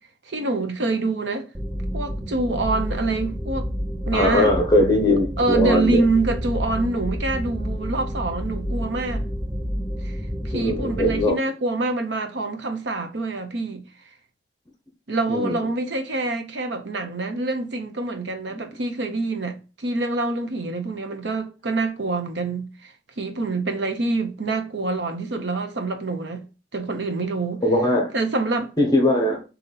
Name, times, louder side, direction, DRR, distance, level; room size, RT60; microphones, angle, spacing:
voice 1, 0.3-1.5 1.9-3.7 4.1-4.5 5.4-9.2 10.0-10.1 10.4-13.8 15.1-22.9 23.2-26.5 26.7-27.6 28.1-28.7, right 2 dB, 80° right, 0.8 m, -26 dB
sound 1, 1.5-11.3, equal, 5° right, 0.4 m, -29 dB
voice 2, 4.1-6.0 10.5-11.4 15.3-15.6 18.5-18.6 27.6-28.1 28.8-29.4, left 1 dB, 20° left, 0.7 m, -20 dB
3.9 x 2.9 x 3.9 m
head